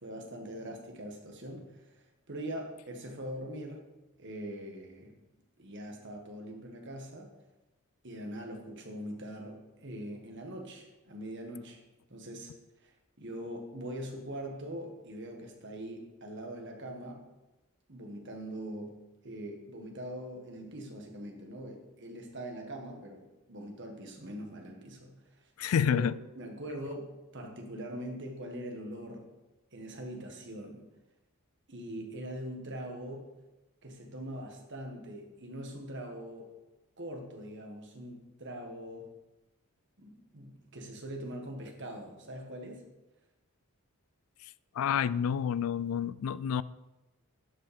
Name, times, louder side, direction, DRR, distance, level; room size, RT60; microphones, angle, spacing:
voice 1, 0.0-3.9 4.2-5.1 5.6-7.3 8.0-11.8 12.1-12.5 12.8-12.9 13.2-17.2 17.9-25.1 25.4-25.5 25.8-29.3 29.7-30.8 31.7-33.3 33.8-36.5 37.0-39.1 40.0-42.9, right 1 dB, 55° right, 1.7 m, -42 dB
voice 2, 25.6-26.2 44.8-46.6, left 8 dB, 70° left, 0.3 m, -29 dB
11.5 x 5.5 x 5.2 m
head